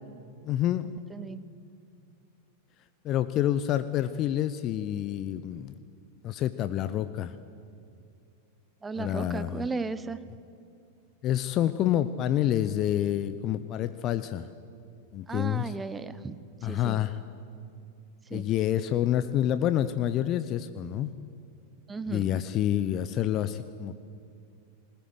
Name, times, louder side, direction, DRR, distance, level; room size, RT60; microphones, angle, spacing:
voice 1, 0.4-0.9 3.0-5.8 6.2-7.4 9.0-9.7 11.2-14.5 15.1-15.7 16.6-17.2 18.3-21.1 22.1-23.9, left 11 dB, 35° left, 13 dB, 0.8 m, -28 dB
voice 2, 1.1-1.4 8.8-10.2 15.3-17.0 18.3-18.5 21.9-22.3, right 4 dB, 15° right, 14 dB, 1.0 m, -35 dB
20.0 x 19.5 x 9.7 m, 2.4 s
figure-of-eight pair, 90°, 0 cm